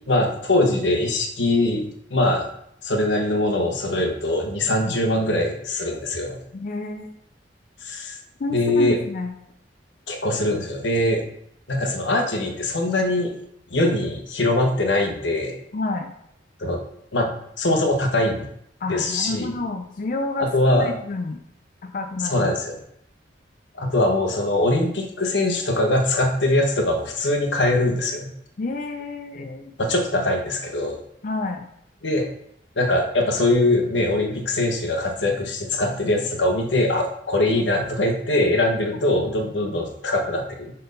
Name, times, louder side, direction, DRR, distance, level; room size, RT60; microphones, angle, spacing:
voice 1, 0.1-1.8 2.1-2.4 2.8-6.4 7.8-8.2 8.5-9.0 10.1-11.2 11.7-13.3 13.7-15.6 16.6-16.8 17.1-17.3 17.6-18.5 18.9-19.5 20.4-21.0 22.3-22.8 23.8-28.3 29.8-31.0 32.0-32.3 32.8-40.7, left 1 dB, 85° left, 3 dB, 1.1 m, -22 dB
voice 2, 6.5-7.1 8.4-9.3 15.7-16.1 18.8-20.5 20.8-21.4 21.8-22.5 28.6-29.8 31.2-31.7, left 3 dB, 50° left, 5 dB, 0.5 m, -29 dB
5.4 x 4.3 x 5.3 m, 0.73 s
head